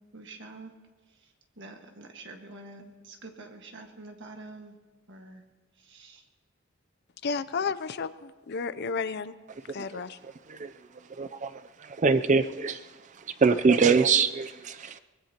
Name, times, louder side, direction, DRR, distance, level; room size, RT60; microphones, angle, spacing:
voice 1, 0.1-0.7 1.2-1.3 1.6-4.7 5.1-5.4 5.8-6.2, right 2 dB, 60° right, 1.6 m, -46 dB
voice 2, 7.2-9.3 9.7-10.2, left 5 dB, 50° left, 0.5 m, -32 dB
voice 3, 11.2-11.5 12.0-12.8 13.4-15.0, right 5 dB, 35° right, 0.5 m, -23 dB
23.5 x 20.0 x 2.9 m
head